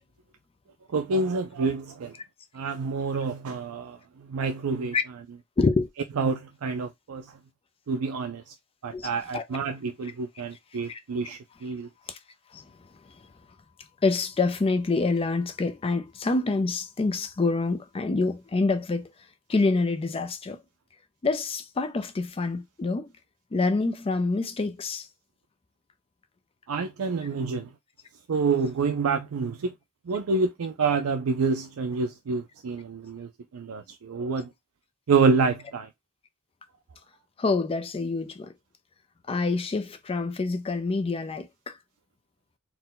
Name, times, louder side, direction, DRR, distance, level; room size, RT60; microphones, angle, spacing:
voice 1, 0.9-2.1 2.5-5.0 6.2-7.3 7.9-8.5 8.8-11.9 26.7-27.7 28.3-29.7 30.1-34.5 35.1-35.9, right 4 dB, 70° right, 0.4 m, -27 dB
voice 2, 5.6-5.9 8.9-9.4 10.9-11.0 12.1-12.2 12.5-12.6 14.0-19.1 19.5-20.6 21.2-23.1 23.5-25.1 37.4-38.5 39.3-41.7, left 3 dB, 25° left, 0.4 m, -26 dB
4.3 x 2.2 x 3.7 m
head